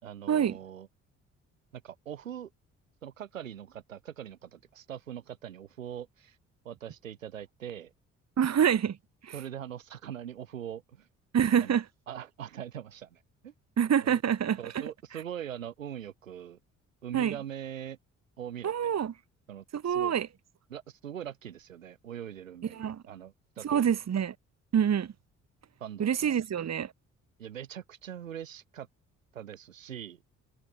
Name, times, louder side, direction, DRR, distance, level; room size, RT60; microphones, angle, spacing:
voice 1, 0.0-0.9 1.7-2.5 3.0-6.4 6.6-7.9 9.3-11.1 11.6-11.8 12.1-13.5 14.0-14.2 14.6-16.6 17.0-18.0 18.4-18.9 19.5-20.1 20.7-23.8 25.8-26.3 27.4-28.9 29.3-30.3, right 10 dB, 90° right, 2.2 m, -42 dB
voice 2, 8.4-9.0 9.2-9.3 11.3-11.8 13.8-14.8 17.1-17.4 18.6-19.1 19.7-20.3 22.7-23.0 23.6-24.3 24.7-25.1 26.0-26.9, right 8 dB, 45° right, 1.7 m, -26 dB
figure-of-eight pair, 45°, 38 cm